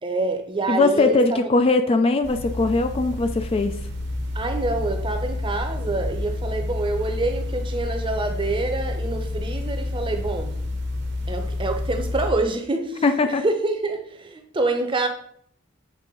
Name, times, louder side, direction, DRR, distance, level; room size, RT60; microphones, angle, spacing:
voice 1, 0.0-1.5 4.3-10.5 11.3-15.1, right 2 dB, 25° right, 0.7 m, -26 dB
voice 2, 0.7-3.8 13.0-13.4, left 3 dB, 30° left, 0.3 m, -20 dB
sound 1, 2.2-12.3, left 2 dB, 60° right, 0.9 m, -29 dB
7.5 x 3.5 x 3.7 m
head